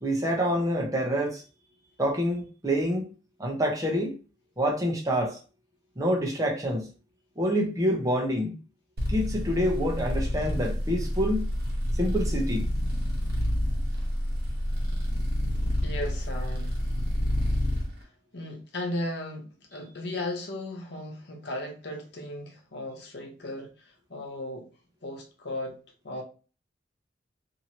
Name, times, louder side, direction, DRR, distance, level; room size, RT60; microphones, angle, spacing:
voice 1, 0.0-1.4 2.0-3.0 3.4-4.1 4.6-5.4 6.0-6.9 7.4-8.5 9.1-11.5 12.0-12.7, equal, 20° right, 0.7 m, -27 dB
sound 1, 9.0-17.9, equal, 60° right, 1.0 m, -28 dB
voice 2, 15.8-16.8 18.3-24.7 25.0-25.8 26.0-26.2, left 1 dB, 70° left, 0.8 m, -36 dB
2.9 x 2.7 x 2.9 m
head